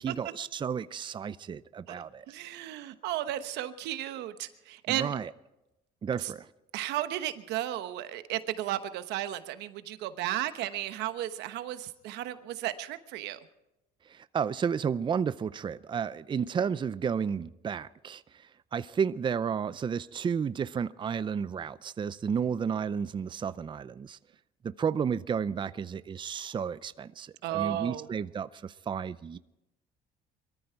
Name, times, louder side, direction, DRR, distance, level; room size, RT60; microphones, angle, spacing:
voice 1, 0.0-2.3 4.9-5.3 6.0-6.5 14.1-24.2 24.6-29.4, right 7 dB, 30° right, 0.5 m, -32 dB
voice 2, 1.9-5.1 6.2-6.3 6.7-13.4 27.4-28.1, right 13 dB, 85° right, 1.1 m, -34 dB
23.0 x 14.0 x 4.5 m
cardioid pair, 110°, 17 cm